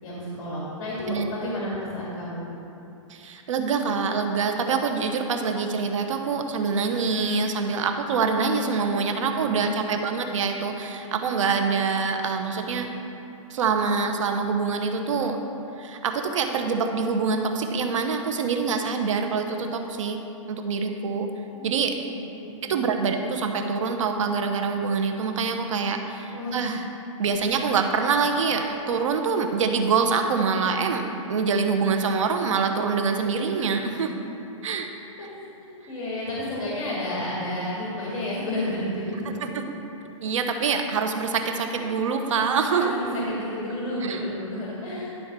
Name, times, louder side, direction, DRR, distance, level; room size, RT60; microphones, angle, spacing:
voice 1, 0.0-2.4 8.8-9.8 21.5-22.8 26.3-26.7 33.9-34.1 35.2-35.3 35.6-39.4 41.7-41.8 42.7-45.1, left 1 dB, 45° left, -6 dB, 2.1 m, -32 dB
voice 2, 3.1-12.9 13.5-15.4 15.8-20.2 20.5-21.3 21.6-22.0 22.6-26.9 27.2-31.0 31.3-34.2 34.6-34.9 36.7-36.8 39.4-39.5 40.2-43.0 44.0-44.2, right 5 dB, 65° right, 5 dB, 0.9 m, -25 dB
11.0 x 3.9 x 6.0 m, 2.8 s
hypercardioid pair, 155°, 17 cm